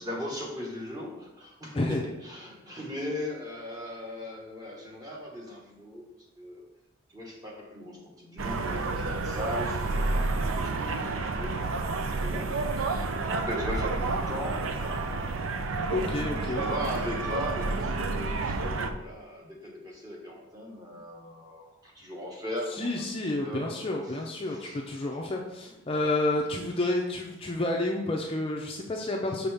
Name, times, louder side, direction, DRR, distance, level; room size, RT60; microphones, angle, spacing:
voice 1, 0.0-6.0 6.4-6.6 7.1-15.6 16.4-22.9 23.4-24.2 24.5-24.8, equal, 20° right, -2 dB, 1.3 m, -38 dB
sound 1, 8.4-18.9, right 3 dB, 65° right, 0.5 m, -30 dB
voice 2, 15.9-16.6 22.7-29.5, left 2 dB, 25° left, 0 dB, 0.5 m, -30 dB
6.3 x 5.5 x 3.4 m, 0.93 s
head